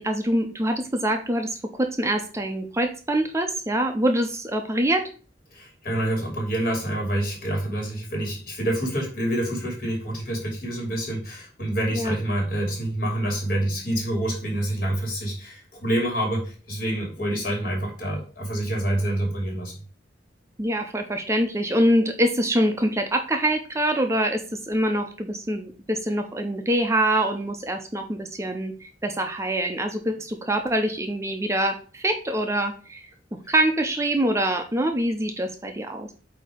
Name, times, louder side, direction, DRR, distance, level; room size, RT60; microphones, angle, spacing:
voice 1, 0.0-5.1 11.9-12.2 20.6-33.1 33.5-36.1, right 1 dB, 15° right, 5 dB, 0.6 m, -25 dB
voice 2, 5.5-19.7, right 1 dB, 55° left, 0 dB, 2.8 m, -27 dB
8.4 x 2.8 x 5.0 m, 0.38 s
head